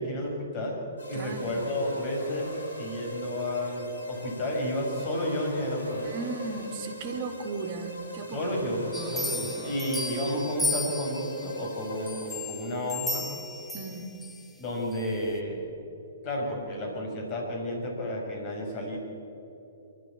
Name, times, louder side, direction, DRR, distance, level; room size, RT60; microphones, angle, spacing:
voice 1, 0.0-2.5 2.8-6.2 8.3-13.3 14.6-15.6 16.2-19.0, left 1 dB, 35° left, 0 dB, 5.9 m, -31 dB
sound 1, 1.0-12.7, right 1 dB, 70° left, 5.9 m, -39 dB
voice 2, 1.1-1.5 6.0-8.6 8.9-9.2 13.7-14.1, right 4 dB, 40° right, 5 dB, 2.5 m, -36 dB
sound 2, 8.9-11.5 12.1-14.4 14.9-15.0, left 2 dB, 5° left, 1.7 m, -34 dB
25.0 x 12.5 x 8.6 m, 3.0 s
figure-of-eight pair, 120°, 0 cm